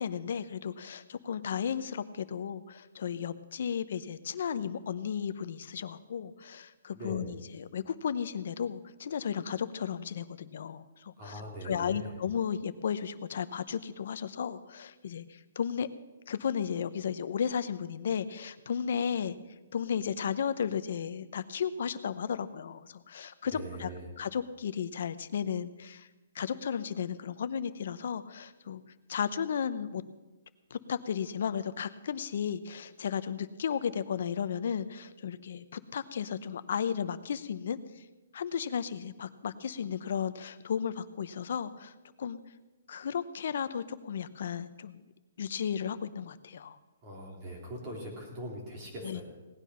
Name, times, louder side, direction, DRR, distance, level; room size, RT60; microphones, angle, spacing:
voice 1, 0.0-15.9 16.3-19.4 19.7-23.9 24.2-26.1 26.3-28.8 29.1-30.0 30.7-38.0 38.3-41.9 42.2-42.4 42.9-45.0 45.4-46.8 49.0-49.2, left 7 dB, 55° left, 13 dB, 0.8 m, -34 dB
voice 2, 6.9-7.3 11.2-12.2 23.5-24.1 47.0-49.2, equal, 25° right, -1 dB, 3.6 m, -41 dB
18.0 x 9.8 x 5.7 m, 1.1 s
hypercardioid pair, 170°, 0 cm